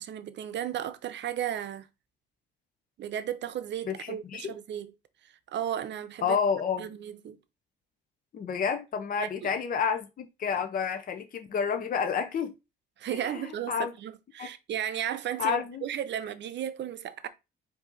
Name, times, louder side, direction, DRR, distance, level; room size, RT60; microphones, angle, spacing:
voice 1, 0.0-1.9 3.0-4.9 5.5-6.4 6.8-7.4 9.2-9.5 13.0-17.3, right 10 dB, 65° right, 0.6 m, -34 dB
voice 2, 3.9-4.5 6.2-6.9 8.3-12.5 13.1-13.9 14.4-14.5 15.4-15.9, left 6 dB, 45° left, 0.6 m, -30 dB
4.7 x 2.7 x 3.9 m
cardioid pair, 90°, 20 cm